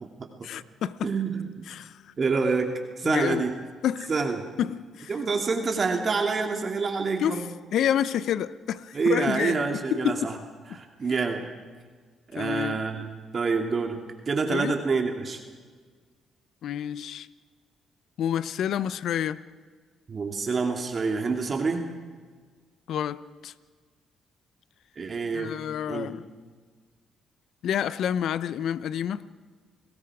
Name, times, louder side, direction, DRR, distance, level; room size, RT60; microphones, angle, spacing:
voice 1, 0.4-1.1 1.7-1.9 3.0-3.4 3.8-4.1 4.6-5.1 7.2-7.4 7.7-9.6 9.9-10.3 12.4-12.8 14.5-14.8 16.6-17.3 18.2-19.4 22.9-23.5 25.3-26.2 27.6-29.3, left 10 dB, 75° left, 16 dB, 0.8 m, -28 dB
voice 2, 1.0-1.5 2.2-2.7 3.0-3.5 4.1-4.5 5.1-7.4 8.9-10.3 10.7-11.4 12.3-15.4 20.1-21.8 25.0-25.5 25.9-26.1, right 4 dB, 40° right, 3 dB, 2.5 m, -27 dB
30.0 x 20.0 x 4.9 m, 1.5 s
cardioid pair, 90°, 0 cm